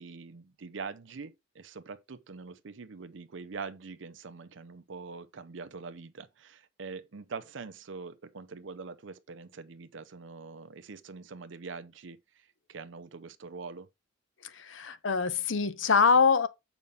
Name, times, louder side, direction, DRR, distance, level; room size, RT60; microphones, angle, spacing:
voice 1, 0.0-12.2 12.7-13.9, right 4 dB, 75° right, 0.6 m, -43 dB
voice 2, 14.4-16.5, left 5 dB, 80° left, 0.8 m, -24 dB
7.1 x 5.2 x 3.5 m
head